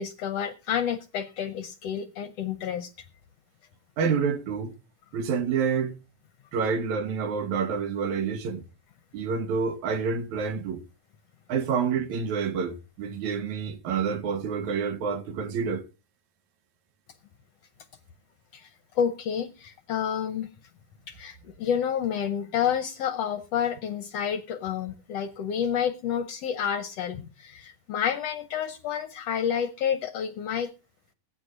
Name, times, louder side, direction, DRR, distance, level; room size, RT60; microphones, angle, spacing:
voice 1, 0.0-2.9 18.5-18.7 18.9-20.5 21.1-30.7, left 8 dB, 70° left, 1.6 m, -29 dB
voice 2, 4.0-4.7 5.1-5.9 6.5-8.6 9.1-10.8 11.5-15.8, right 6 dB, 70° right, 2.6 m, -28 dB
20.5 x 9.7 x 2.5 m
omnidirectional pair, 3.6 m